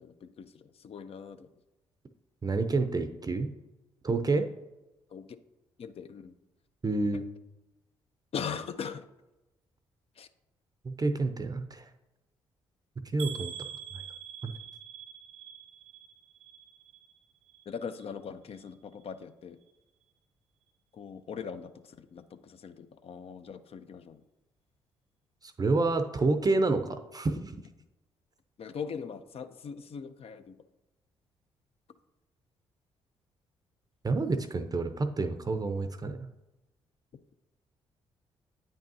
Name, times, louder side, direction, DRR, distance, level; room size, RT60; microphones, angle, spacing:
voice 1, 0.0-1.5 5.1-5.3 5.8-6.3 8.3-9.1 10.2-10.3 17.7-19.6 20.9-24.2 28.6-30.6, left 6 dB, 50° left, 10 dB, 0.5 m, -40 dB
voice 2, 2.4-3.5 4.0-4.5 6.8-7.2 10.8-11.9 13.1-13.5 14.4-14.5 25.4-27.6 34.0-36.2, right 3 dB, 30° right, 8 dB, 0.6 m, -28 dB
sound 1, 13.2-17.2 17.5-18.1 18.5-18.7 19.0-19.1, right 9 dB, 90° right, 0.9 m, -45 dB
8.7 x 5.4 x 2.7 m, 1.0 s
hypercardioid pair, 45°, 13 cm